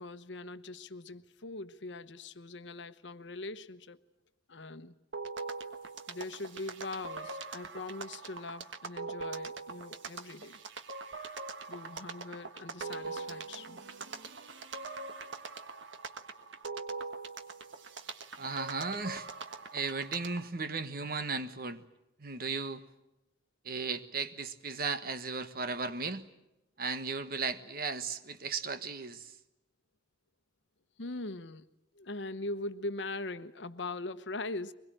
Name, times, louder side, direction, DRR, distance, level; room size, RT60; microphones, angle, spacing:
voice 1, 0.0-4.0 4.5-4.9 6.1-10.6 11.7-13.8 19.6-19.7 31.0-31.7 31.9-34.7, left 2 dB, 75° left, 1.0 m, -41 dB
sound 1, 5.1-20.5, right 4 dB, 90° right, 1.4 m, -42 dB
voice 2, 18.4-19.3 19.7-21.8 22.2-22.8 23.6-26.3 26.8-29.3, right 4 dB, 50° right, 1.3 m, -36 dB
23.5 x 21.0 x 9.1 m
head